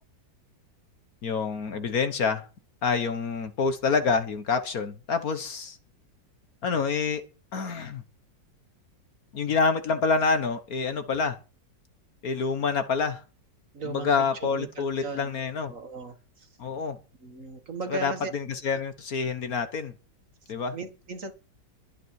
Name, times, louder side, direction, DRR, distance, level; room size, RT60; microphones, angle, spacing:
voice 1, 1.2-2.5 2.8-5.8 6.6-7.2 7.5-8.0 9.3-11.4 12.2-13.2 13.8-15.7 16.6-17.0 18.0-19.9 20.5-20.7, left 5 dB, 55° left, 9 dB, 1.6 m, -27 dB
voice 2, 13.7-16.5 17.2-18.3 18.7-18.8 20.7-21.3, right 3 dB, 45° right, 7 dB, 2.1 m, -38 dB
22.0 x 9.8 x 4.7 m, 0.36 s
omnidirectional pair, 1.9 m